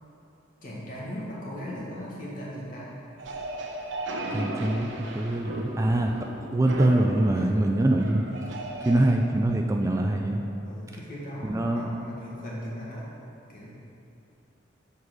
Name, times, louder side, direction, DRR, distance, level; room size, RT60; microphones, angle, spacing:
voice 1, 0.6-3.0 7.3-7.5 8.8-9.4 10.6-13.1 13.5-13.7, equal, 45° left, -6 dB, 1.7 m, -38 dB
sound 1, 3.2-9.1, right 1 dB, 80° right, 0.7 m, -35 dB
voice 2, 4.3-6.2 6.5-8.6 8.9-10.4 11.4-11.9, right 1 dB, 15° right, 2 dB, 0.3 m, -24 dB
7.6 x 4.1 x 6.1 m, 2.8 s
head